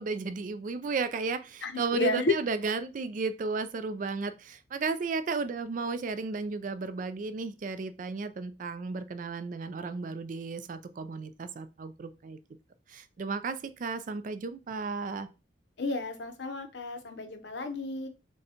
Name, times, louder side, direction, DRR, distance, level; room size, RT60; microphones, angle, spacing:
voice 1, 0.0-12.4 12.9-15.3, right 4 dB, 45° right, 0.3 m, -34 dB
voice 2, 1.6-2.3 15.8-18.1, left 3 dB, 70° left, 0.7 m, -31 dB
6.2 x 2.2 x 2.8 m
head